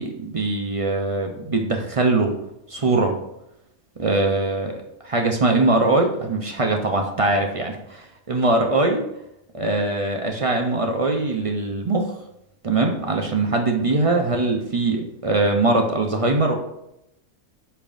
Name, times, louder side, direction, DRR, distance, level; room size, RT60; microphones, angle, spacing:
voice 1, 0.0-2.3 2.7-3.1 4.0-4.7 5.0-9.0 9.5-12.1 12.6-16.5, right 2 dB, 45° right, 2 dB, 0.4 m, -22 dB
8.6 x 5.6 x 2.5 m, 0.84 s
omnidirectional pair, 1.5 m